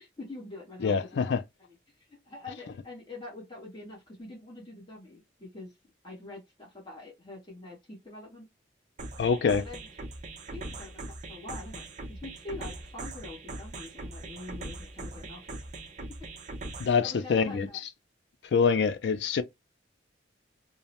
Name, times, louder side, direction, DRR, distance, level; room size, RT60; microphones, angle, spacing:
voice 1, 0.0-1.3 1.6-1.7 2.1-5.7 6.0-8.5 9.6-9.9 10.5-15.6 17.0-17.8, left 2 dB, 25° left, 1.1 m, -45 dB
voice 2, 0.8-1.4 9.2-9.6 16.8-17.7 18.5-19.4, left 5 dB, 65° left, 0.3 m, -25 dB
sound 1, 9.0-17.0, right 2 dB, 40° right, 0.5 m, -41 dB
2.6 x 2.0 x 2.8 m
head